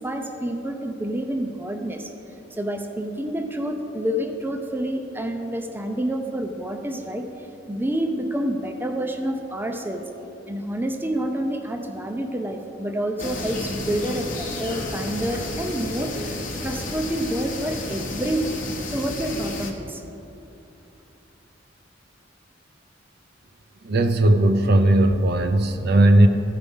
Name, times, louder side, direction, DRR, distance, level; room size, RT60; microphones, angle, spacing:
voice 1, 0.0-2.1 2.5-10.0 10.5-18.5 18.9-20.0, right 1 dB, 10° right, 4 dB, 0.5 m, -28 dB
sound 1, 13.2-19.7, left 2 dB, 45° left, 1.0 m, -31 dB
voice 2, 23.8-26.3, right 1 dB, 55° right, 7 dB, 0.6 m, -17 dB
14.5 x 5.0 x 5.3 m, 2.8 s
head